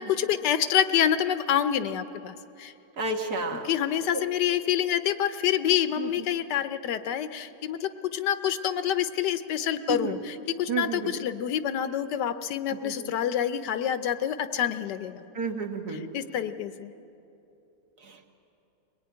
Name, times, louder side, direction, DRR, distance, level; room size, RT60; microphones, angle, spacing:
voice 1, 0.0-2.7 3.6-15.2 15.9-16.9, left 10 dB, 75° left, 11 dB, 1.3 m, -27 dB
voice 2, 3.0-3.7 4.1-4.2 6.0-6.1 9.9-10.2 10.7-11.1 12.8-12.9 15.3-16.0 18.0-18.2, right 4 dB, 65° right, 3 dB, 2.2 m, -31 dB
22.5 x 19.5 x 9.5 m, 2.9 s
omnidirectional pair, 1.9 m